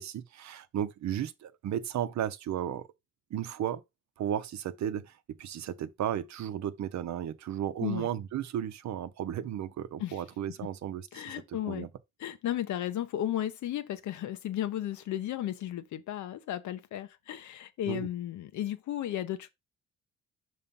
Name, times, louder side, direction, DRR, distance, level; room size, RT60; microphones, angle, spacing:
voice 1, 0.0-2.9 3.3-3.8 4.2-11.9 17.9-18.1, right 10 dB, 65° right, 0.8 m, -34 dB
voice 2, 11.1-11.9 12.2-19.5, left 12 dB, 75° left, 0.9 m, -34 dB
5.7 x 3.2 x 5.3 m
cardioid pair, 90°, 30 cm